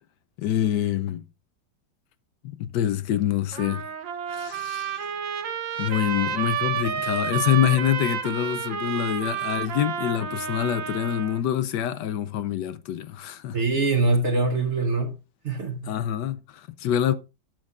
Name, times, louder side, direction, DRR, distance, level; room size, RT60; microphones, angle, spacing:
voice 1, 0.4-1.2 2.6-3.8 4.3-5.0 5.8-13.6 15.9-17.1, left 11 dB, 75° left, 1.1 m, -26 dB
Trumpet, 3.5-11.4, right 7 dB, 80° right, 1.7 m, -30 dB
voice 2, 13.5-15.2 15.4-16.0, right 3 dB, 50° right, 1.0 m, -23 dB
12.0 x 7.6 x 2.4 m
omnidirectional pair, 2.0 m